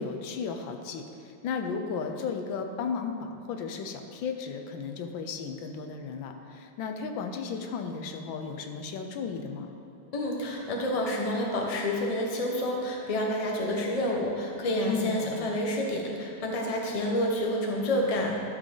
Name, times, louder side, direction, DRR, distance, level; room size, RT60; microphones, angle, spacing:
voice 1, 0.0-9.7 14.9-15.5, left 5 dB, 85° left, 5 dB, 1.5 m, -34 dB
voice 2, 10.1-18.4, left 1 dB, 25° left, -1 dB, 0.9 m, -29 dB
12.5 x 6.6 x 3.8 m, 3.0 s
omnidirectional pair, 2.1 m